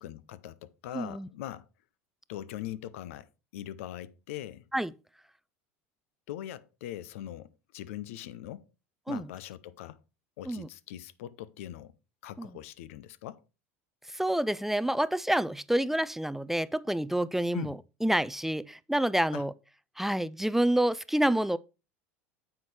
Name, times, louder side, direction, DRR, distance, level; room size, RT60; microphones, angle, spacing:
voice 1, 0.0-1.6 2.3-4.6 6.3-8.7 9.1-10.0 10.4-11.9 12.2-13.4 17.5-17.7 19.3-19.4, left 12 dB, 75° left, 0.6 m, -41 dB
voice 2, 0.9-1.3 4.7-4.9 9.1-9.3 10.4-10.7 12.4-12.5 14.1-19.5 20.0-21.6, right 1 dB, 5° right, 0.4 m, -28 dB
9.3 x 7.1 x 3.3 m
hypercardioid pair, 85°, 7 cm